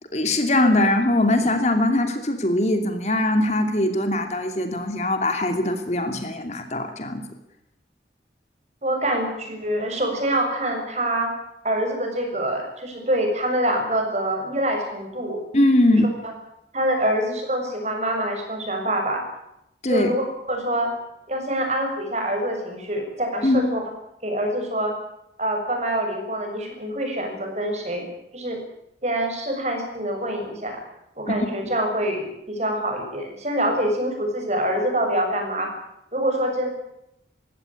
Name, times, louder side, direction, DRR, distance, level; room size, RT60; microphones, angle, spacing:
voice 1, 0.1-7.2 15.5-16.1 19.8-20.1 23.4-23.7 31.3-31.5, left 1 dB, 40° left, 6 dB, 2.7 m, -21 dB
voice 2, 8.8-11.4 11.6-15.4 15.8-16.0 16.7-19.2 19.9-20.9 21.3-23.8 24.2-24.9 25.4-28.1 28.3-28.6 29.0-30.8 31.2-35.7 36.1-36.7, right 1 dB, 40° right, 3 dB, 7.1 m, -25 dB
21.5 x 16.5 x 9.9 m, 0.81 s
head